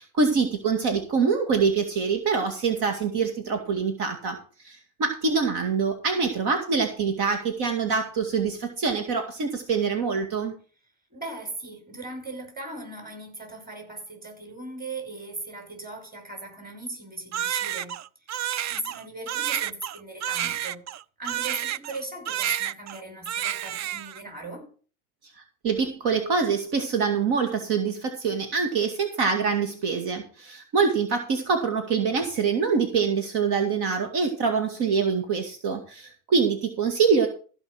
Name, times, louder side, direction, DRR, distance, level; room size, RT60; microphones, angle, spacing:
voice 1, 0.0-4.4 4.6-10.5 25.6-37.3, right 5 dB, 65° right, 2.3 m, -25 dB
voice 2, 11.1-18.0 18.7-20.8 21.2-24.7, right 2 dB, 20° right, 5.9 m, -38 dB
Crying sobbing, 17.3-22.0 22.3-23.0 23.3-24.2, right 11 dB, 40° right, 0.5 m, -30 dB
15.0 x 5.4 x 6.3 m
supercardioid pair, 95°, 42 cm